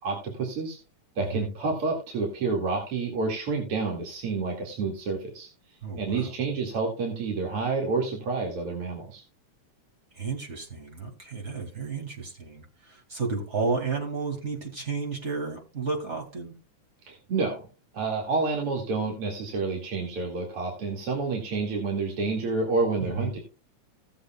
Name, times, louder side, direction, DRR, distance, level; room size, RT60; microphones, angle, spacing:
voice 1, 0.0-0.8 1.2-5.5 6.0-9.2 17.1-17.6 17.9-23.4, right 4 dB, 50° right, -1 dB, 2.9 m, -29 dB
voice 2, 1.2-1.5 5.8-6.3 10.1-16.5 23.0-23.4, right 4 dB, 25° right, 3 dB, 2.2 m, -32 dB
18.0 x 7.1 x 2.3 m, 0.32 s
omnidirectional pair, 3.5 m